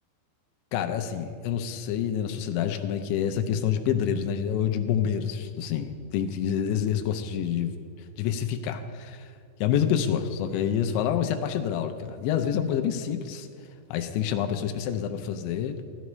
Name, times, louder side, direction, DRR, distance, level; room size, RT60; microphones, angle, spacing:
voice 1, 0.7-7.8 8.2-9.3 9.6-13.5 13.9-15.8, left 9 dB, 90° left, 6 dB, 3.0 m, -27 dB
16.0 x 12.0 x 3.1 m, 2.1 s
omnidirectional pair, 5.1 m